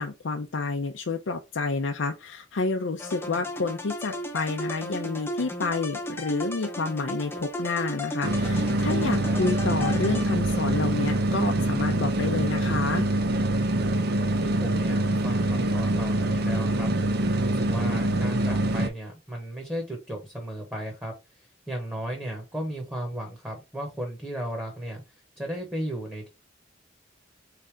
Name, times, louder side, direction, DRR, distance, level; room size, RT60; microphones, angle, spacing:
voice 1, 0.0-13.1, left 3 dB, 90° left, 0.6 m, -29 dB
sound 1, 3.0-10.7, left 1 dB, 10° left, 0.6 m, -35 dB
sound 2, 8.2-18.9, right 1 dB, 55° right, 0.6 m, -25 dB
voice 2, 13.9-26.3, right 1 dB, 10° right, 1.1 m, -35 dB
3.8 x 3.3 x 3.5 m
head